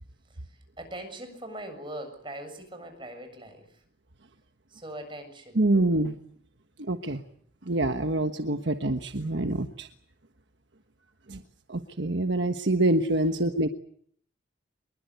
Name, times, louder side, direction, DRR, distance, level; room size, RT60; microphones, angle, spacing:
voice 1, 0.3-3.8 4.7-5.6 13.2-13.5, right 1 dB, 25° right, 7 dB, 7.3 m, -41 dB
voice 2, 5.6-6.2 6.9-7.2 7.7-9.9 11.3-11.4 11.7-13.7, right 2 dB, 65° right, 7 dB, 1.3 m, -26 dB
24.5 x 22.5 x 8.1 m, 0.64 s
head